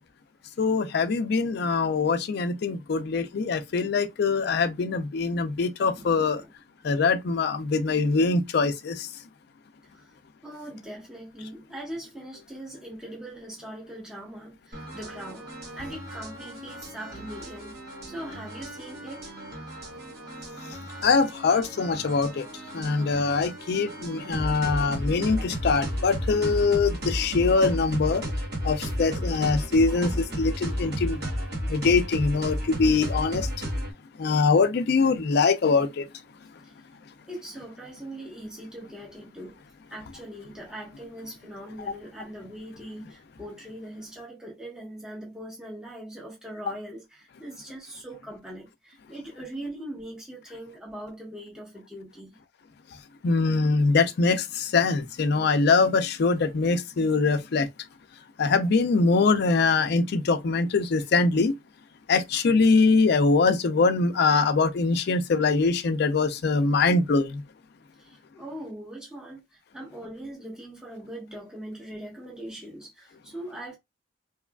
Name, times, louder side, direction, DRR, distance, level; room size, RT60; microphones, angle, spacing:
voice 1, 0.6-6.4 6.8-9.1 21.0-22.5 22.7-28.3 28.6-31.2 31.7-33.5 34.2-36.1 53.2-57.7 58.4-61.6 62.1-67.4, left 4 dB, 60° left, 0.4 m, -23 dB
voice 2, 5.9-6.5 10.4-15.5 15.7-17.8 18.0-19.3 37.3-39.6 39.9-52.4 68.0-69.4 69.7-73.8, right 1 dB, 5° right, 1.0 m, -41 dB
sound 1, 14.7-33.9, equal, 55° right, 1.1 m, -33 dB
2.9 x 2.4 x 2.2 m
head